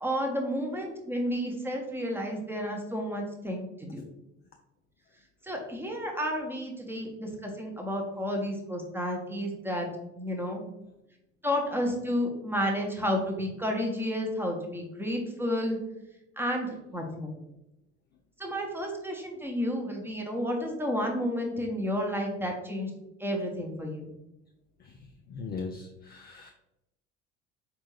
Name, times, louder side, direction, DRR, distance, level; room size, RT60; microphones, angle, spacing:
voice 1, 0.0-4.0 5.4-9.9 10.1-10.6 11.4-15.8 16.4-17.3 18.4-22.9 23.2-24.1, equal, 5° right, 1 dB, 0.8 m, -31 dB
voice 2, 25.3-26.5, left 4 dB, 30° left, 3 dB, 0.3 m, -39 dB
4.3 x 2.4 x 3.1 m, 0.89 s
figure-of-eight pair, 60°, 37 cm